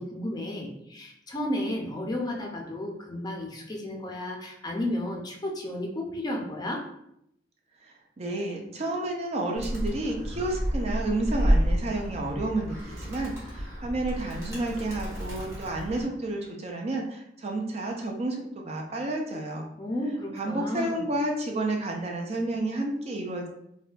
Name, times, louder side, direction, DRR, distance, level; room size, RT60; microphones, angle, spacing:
voice 1, 0.0-6.8 19.8-21.0, left 1 dB, 25° left, 0 dB, 0.5 m, -33 dB
voice 2, 7.8-19.7 20.3-23.5, right 2 dB, 35° right, 1 dB, 0.4 m, -31 dB
Animal, 9.6-16.0, equal, 15° right, 1.1 m, -30 dB
4.0 x 2.2 x 2.4 m, 0.77 s
head